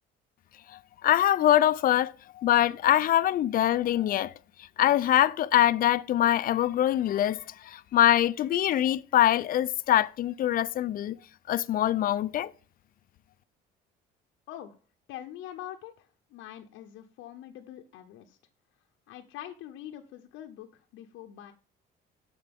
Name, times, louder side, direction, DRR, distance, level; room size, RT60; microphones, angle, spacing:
voice 1, 0.7-4.3 4.6-11.2 11.5-12.5, left 12 dB, 45° left, 0.4 m, -24 dB
voice 2, 15.1-18.4 19.1-21.5, left 12 dB, 75° left, 0.7 m, -44 dB
12.5 x 4.5 x 3.5 m
cardioid pair, 115°, 20 cm